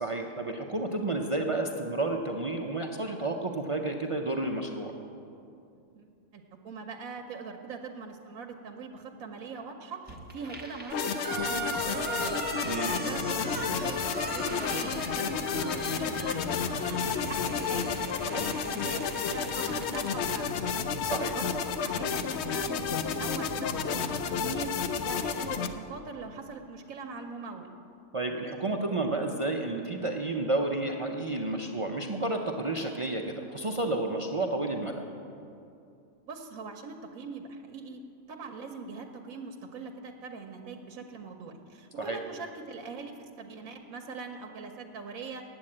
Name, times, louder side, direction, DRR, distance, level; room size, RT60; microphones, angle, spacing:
voice 1, 0.0-4.9 12.6-12.9 21.0-21.4 28.1-35.0 42.0-42.2, right 2 dB, 55° right, 2 dB, 0.3 m, -31 dB
voice 2, 6.0-12.4 12.8-17.9 18.2-20.5 21.3-27.7 36.2-38.0 38.3-45.4, right 4 dB, 80° right, 4 dB, 1.2 m, -42 dB
sound 1, 10.1-20.4, right 2 dB, 10° right, 0.9 m, -39 dB
sound 2, 10.9-25.7, left 6 dB, 65° left, 0.8 m, -31 dB
sound 3, 11.3-25.9, left 4 dB, 85° left, 1.3 m, -42 dB
8.9 x 7.9 x 8.6 m, 2.6 s
omnidirectional pair, 1.4 m